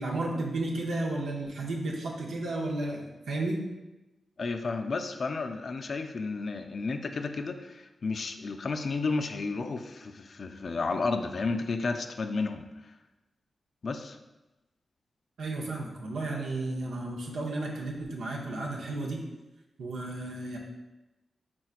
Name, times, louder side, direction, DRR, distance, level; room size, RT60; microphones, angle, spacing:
voice 1, 0.0-3.6 15.4-19.2 19.8-20.6, right 2 dB, 90° right, -1 dB, 0.7 m, -33 dB
voice 2, 4.4-12.9 13.8-14.2, left 4 dB, 60° left, 6 dB, 0.3 m, -32 dB
4.3 x 3.7 x 2.4 m, 1.0 s
cardioid pair, 65°, 0 cm